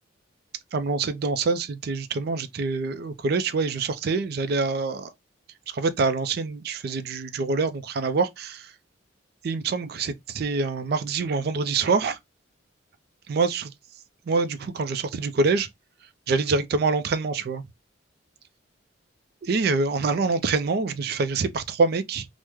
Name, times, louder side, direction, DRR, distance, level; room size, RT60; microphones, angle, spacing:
voice 1, 0.7-5.1 5.7-8.6 9.4-12.2 13.3-13.7 14.3-15.7 16.3-17.6 19.4-22.2, right 4 dB, 55° right, 0.4 m, -25 dB
3.4 x 2.0 x 3.0 m
head